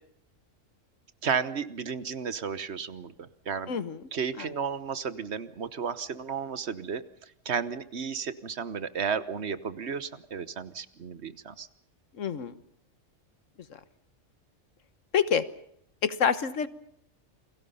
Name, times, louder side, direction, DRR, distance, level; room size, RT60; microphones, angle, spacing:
voice 1, 1.2-3.7 4.1-11.7, right 6 dB, 60° right, 14 dB, 1.3 m, -33 dB
voice 2, 3.7-4.0 4.4-4.5 12.2-12.5 15.1-15.4 16.0-16.7, left 7 dB, 80° left, 14 dB, 1.5 m, -26 dB
29.0 x 21.5 x 5.6 m, 0.70 s
omnidirectional pair, 1.3 m